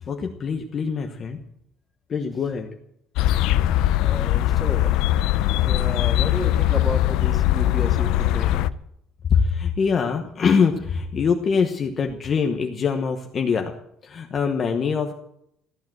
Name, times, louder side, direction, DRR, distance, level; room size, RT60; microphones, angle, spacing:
voice 1, 0.0-1.5 2.1-2.7 9.3-13.7 14.0-15.1, left 6 dB, 25° left, 3 dB, 1.1 m, -23 dB
sound 1, 3.2-8.7, left 14 dB, 65° left, 0.6 m, -21 dB
voice 2, 4.0-5.1 5.6-8.7, left 1 dB, 5° left, 2 dB, 1.9 m, -32 dB
15.0 x 11.5 x 7.8 m, 0.74 s
cardioid pair, 175°, 0 cm